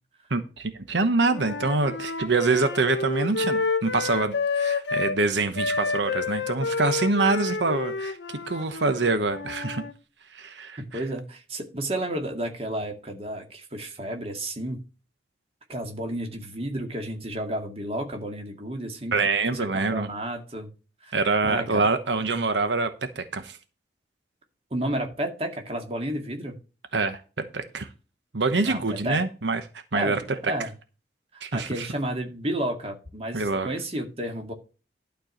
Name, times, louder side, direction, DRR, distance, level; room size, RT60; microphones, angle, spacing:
voice 1, 0.3-9.8 10.3-11.0 19.1-20.1 21.1-22.9 23.2-23.6 26.9-27.2 27.5-27.9 28.3-29.6 29.9-30.2 31.4-31.9 33.3-33.7, right 3 dB, 85° right, 9 dB, 1.0 m, -25 dB
Wind instrument woodwind instrument, 1.3-5.2 5.5-9.9, left 4 dB, 90° left, 1.0 m, -29 dB
voice 2, 10.9-14.8 15.7-19.1 19.5-20.7 21.0-21.2 21.4-21.8 24.7-26.5 28.6-29.2 29.9-30.7 31.3-34.5, right 1 dB, 35° right, 3 dB, 2.1 m, -32 dB
12.0 x 4.6 x 6.5 m, 0.33 s
head